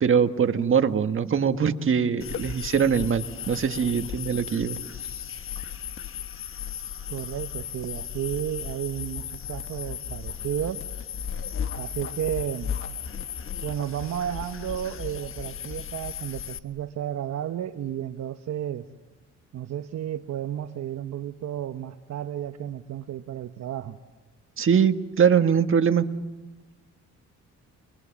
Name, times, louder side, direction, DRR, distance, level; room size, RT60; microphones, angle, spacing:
voice 1, 0.0-4.8 24.6-26.1, right 7 dB, 45° right, 7 dB, 1.6 m, -22 dB
sound 1, 2.2-16.6, left 8 dB, 45° left, 1.3 m, -35 dB
voice 2, 7.1-10.8 11.8-12.8 13.6-18.9 19.5-24.0, right 11 dB, 60° right, 8 dB, 1.0 m, -32 dB
29.0 x 23.0 x 7.3 m, 1.1 s
cardioid pair, 90°, 30 cm